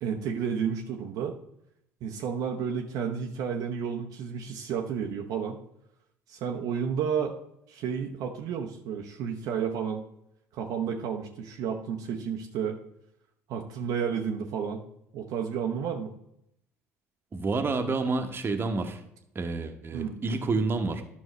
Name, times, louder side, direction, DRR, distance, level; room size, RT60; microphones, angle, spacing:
voice 1, 0.0-1.3 2.0-5.6 6.3-7.4 7.7-10.0 10.5-12.8 13.5-14.8 15.1-16.1 19.9-20.2, right 7 dB, 60° right, 2 dB, 0.8 m, -31 dB
voice 2, 17.3-19.0 19.3-21.0, right 3 dB, 30° right, 6 dB, 1.1 m, -29 dB
11.0 x 5.7 x 3.2 m, 0.78 s
hypercardioid pair, 60°, 7 cm